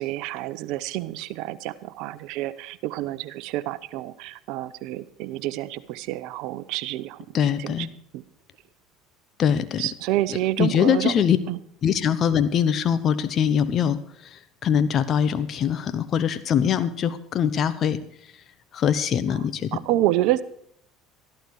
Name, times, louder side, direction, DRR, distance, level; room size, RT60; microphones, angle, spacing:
voice 1, 0.0-7.2 7.6-7.9 8.1-8.2 9.8-11.1 11.5-11.6 19.7-20.4, right 15 dB, 70° right, 16 dB, 0.9 m, -28 dB
voice 2, 7.3-7.9 9.4-9.9 10.3-11.4 11.8-18.3 18.7-19.8, left 8 dB, 45° left, 13 dB, 1.0 m, -23 dB
14.0 x 12.0 x 4.8 m, 0.65 s
supercardioid pair, 85°, 0 cm